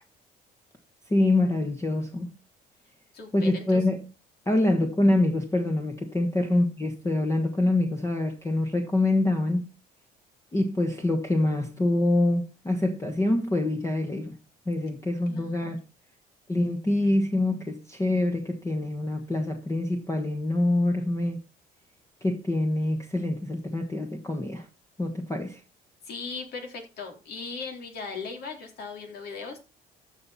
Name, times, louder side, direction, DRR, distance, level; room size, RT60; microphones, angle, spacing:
voice 1, 1.1-2.3 3.3-4.0 4.5-9.7 10.5-14.4 14.7-15.8 16.5-21.4 22.2-24.7 25.0-25.6, left 1 dB, 15° left, 1.4 m, -25 dB
voice 2, 3.1-3.8 6.4-6.5 14.9-15.0 15.3-15.7 26.0-29.6, left 4 dB, 70° left, 3.7 m, -38 dB
14.5 x 5.8 x 4.2 m
cardioid pair, 110°, 17 cm